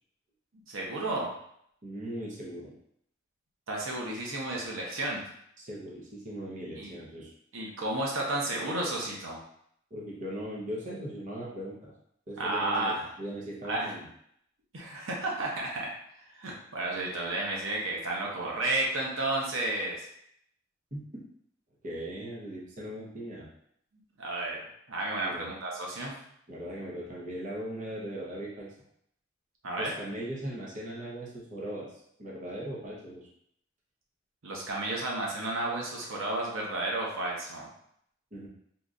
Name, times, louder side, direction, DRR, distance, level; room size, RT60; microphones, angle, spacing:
voice 1, 0.7-1.3 3.7-5.2 6.8-6.9 7.5-9.4 12.4-13.0 13.7-13.9 14.7-15.9 16.3-20.1 24.2-24.6 24.9-26.1 29.6-29.9 34.4-37.7, right 2 dB, 90° right, -2 dB, 0.8 m, -32 dB
voice 2, 1.8-2.7 5.6-7.3 9.9-11.9 12.3-14.1 20.9-21.2 21.8-23.5 25.2-25.5 26.5-28.7 29.8-33.3 38.3-38.5, right 1 dB, 40° right, -4 dB, 0.8 m, -39 dB
3.9 x 2.9 x 2.5 m, 0.71 s
head